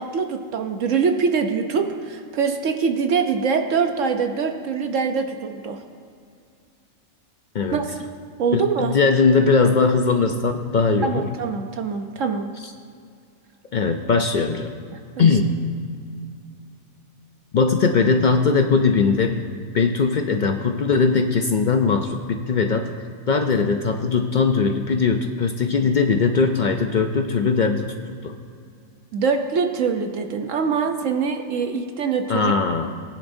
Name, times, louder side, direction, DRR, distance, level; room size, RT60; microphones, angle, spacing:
voice 1, 0.0-5.8 7.7-7.8 8.4-8.9 11.0-12.5 15.1-15.2 29.1-32.5, right 5 dB, 65° right, 5 dB, 1.0 m, -23 dB
voice 2, 8.5-11.2 13.7-14.7 15.2-15.6 17.5-19.4 19.7-22.9 23.3-28.3 32.3-32.9, left 4 dB, 75° left, 5 dB, 0.4 m, -20 dB
19.5 x 10.0 x 2.7 m, 2.3 s
omnidirectional pair, 1.5 m